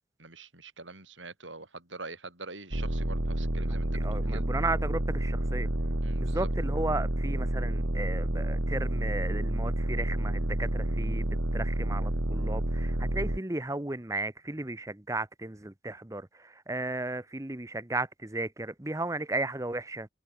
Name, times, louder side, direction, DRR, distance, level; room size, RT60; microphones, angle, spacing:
voice 1, 0.2-4.4 6.0-6.5, right 3 dB, 90° right, 7.8 m, -44 dB
sound 1, 2.7-13.4, right 1 dB, 65° right, 2.2 m, -29 dB
voice 2, 3.9-5.7 6.2-20.1, right 2 dB, 15° right, 0.9 m, -35 dB
head